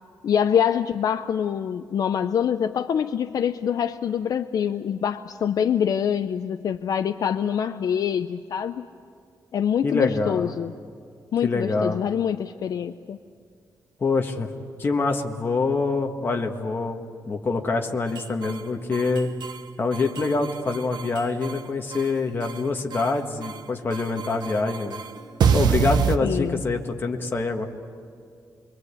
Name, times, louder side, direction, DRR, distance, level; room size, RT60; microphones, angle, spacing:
voice 1, 0.2-8.9 9.5-10.7 11.3-13.2 26.2-26.6, left 8 dB, 60° left, 9 dB, 0.6 m, -25 dB
voice 2, 9.8-10.5 11.4-12.0 14.0-14.5 14.8-19.3 19.8-25.0 25.5-27.6, left 3 dB, 30° left, 3 dB, 1.6 m, -25 dB
sound 1, 18.1-18.6 18.9-19.6 19.9-21.6 21.9-22.6 22.9-23.6 23.9-26.2, right 6 dB, 85° right, 1.0 m, -26 dB
27.5 x 23.0 x 8.4 m, 2.3 s
wide cardioid pair, 175°, 7 cm